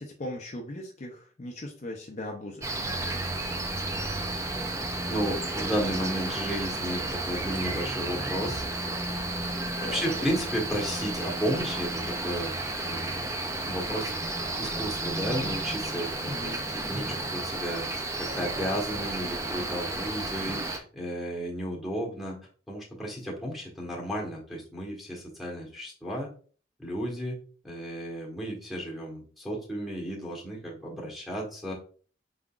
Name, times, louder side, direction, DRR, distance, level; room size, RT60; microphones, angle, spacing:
voice 1, 0.0-2.7 9.8-10.2 16.3-16.7, left 1 dB, 40° left, 1 dB, 0.6 m, -39 dB
Cricket, 2.6-20.8, right 2 dB, 15° right, 0.5 m, -32 dB
voice 2, 5.1-8.6 9.8-12.6 12.8-14.1 14.6-17.9 18.2-22.4 22.7-26.3 26.8-27.4 27.6-31.7, equal, ahead, -3 dB, 1.3 m, -33 dB
4.9 x 3.7 x 2.4 m, 0.41 s
head